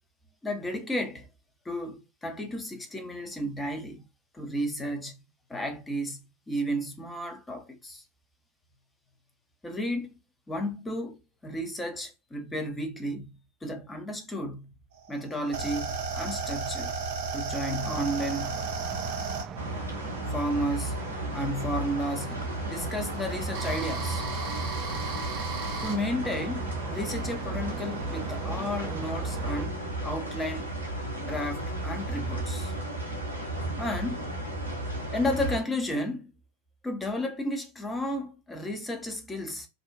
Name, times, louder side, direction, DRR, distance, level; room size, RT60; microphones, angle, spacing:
voice 1, 0.4-1.3 1.7-4.0 4.3-5.2 5.5-6.2 6.5-8.0 9.6-10.1 10.5-13.3 13.6-14.7 15.1-16.9 17.3-18.7 20.3-21.0 21.3-24.2 25.8-30.7 31.1-32.7 33.8-34.3 35.1-36.3 36.8-39.7, equal, 10° left, 0.6 m, -33 dB
sound 1, 15.0-21.1 22.1-26.0, right 4 dB, 50° right, 1.0 m, -34 dB
sound 2, 17.8-29.7, right 8 dB, 30° right, 0.3 m, -41 dB
sound 3, 19.6-35.6, right 1 dB, 90° left, 0.9 m, -34 dB
2.5 x 2.1 x 2.4 m
figure-of-eight pair, 90°, 0 cm